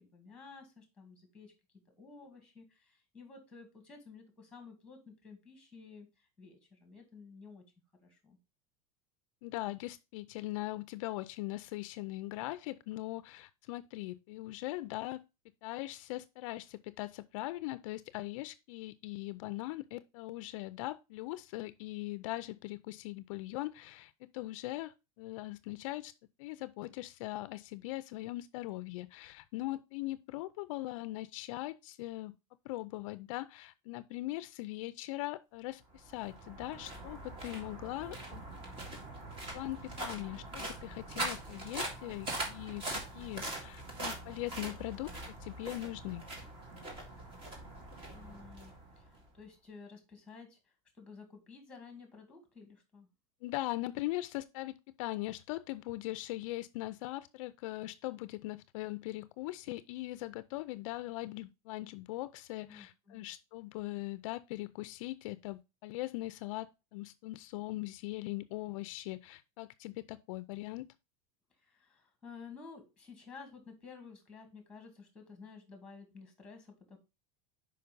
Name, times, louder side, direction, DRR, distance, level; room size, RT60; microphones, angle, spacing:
voice 1, 0.0-1.5 2.0-7.6 8.0-8.4 48.1-53.1 62.6-63.3 71.6-77.0, left 5 dB, 5° left, 2.0 m, -53 dB
voice 2, 9.4-15.2 15.6-26.1 26.4-32.4 32.6-38.4 39.5-42.8 43.1-45.1 45.4-46.2 53.4-70.9, left 18 dB, 60° left, 0.4 m, -40 dB
sound 1, 35.9-49.3, right 1 dB, 30° right, 2.2 m, -42 dB
5.7 x 5.1 x 5.3 m
supercardioid pair, 160°, 18 cm